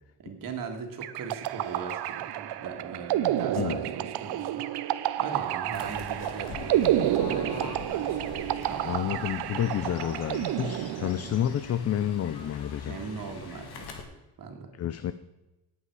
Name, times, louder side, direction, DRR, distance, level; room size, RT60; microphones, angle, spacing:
voice 1, 0.2-4.6 4.9-8.3 8.6-8.9 11.0-11.1 12.9-13.9 14.4-14.7, right 5 dB, 55° right, 4 dB, 2.2 m, -39 dB
sound 1, 1.0-11.4, right 12 dB, 80° right, 0.8 m, -30 dB
Fowl / Bird, 5.7-14.0, left 4 dB, 70° left, 2.2 m, -42 dB
voice 2, 8.8-13.0 14.8-15.1, left 10 dB, 40° left, 13 dB, 0.5 m, -29 dB
18.0 x 8.3 x 4.8 m, 0.99 s
cardioid pair, 155°, 39 cm